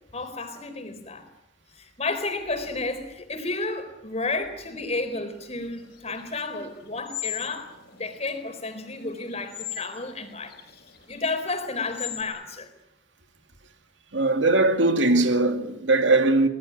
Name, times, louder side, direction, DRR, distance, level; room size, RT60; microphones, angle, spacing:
voice 1, 0.1-1.3 1.7-10.5 11.1-12.7, left 3 dB, 35° left, 4.1 m, -32 dB
sound 1, 5.4-12.2, left 13 dB, 60° left, 4.6 m, -40 dB
voice 2, 14.1-16.5, right 2 dB, 80° right, 2.4 m, -20 dB
24.0 x 19.5 x 9.3 m
head